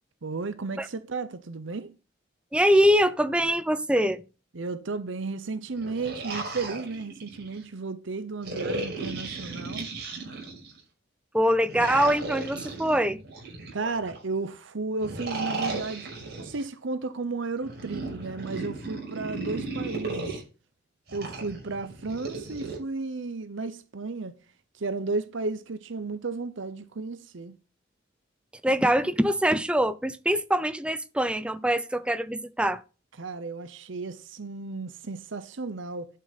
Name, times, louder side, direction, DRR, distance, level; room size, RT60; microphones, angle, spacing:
voice 1, 0.2-1.9 4.5-9.9 13.7-20.4 21.1-24.3 24.7-27.5 33.2-36.1, right 3 dB, 75° right, 0.8 m, -34 dB
voice 2, 2.5-4.2 11.3-13.2 28.6-32.8, equal, 5° right, 0.5 m, -23 dB
sound 1, 5.7-7.6 8.4-10.8 11.7-14.2 15.0-16.6 17.6-20.4 21.1-22.8, right 3 dB, 55° right, 5.7 m, -35 dB
11.5 x 6.5 x 4.1 m
head